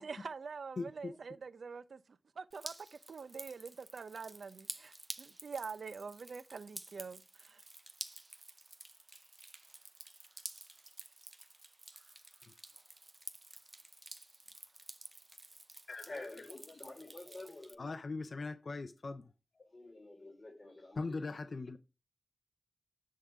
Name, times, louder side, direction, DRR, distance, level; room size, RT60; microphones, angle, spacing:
voice 1, 0.0-2.0 2.4-2.7 3.1-4.9 5.2-7.6, right 5 dB, 80° right, 0.6 m, -45 dB
voice 2, 0.8-1.2 15.9-16.3 17.8-19.3 21.0-21.8, left 3 dB, 60° left, 0.6 m, -40 dB
Drip, 2.5-17.8, right 2 dB, 30° right, 0.6 m, -51 dB
voice 3, 16.0-17.9 19.6-21.2, left 2 dB, 40° left, 3.9 m, -49 dB
10.5 x 3.8 x 5.8 m
wide cardioid pair, 75°, 0 cm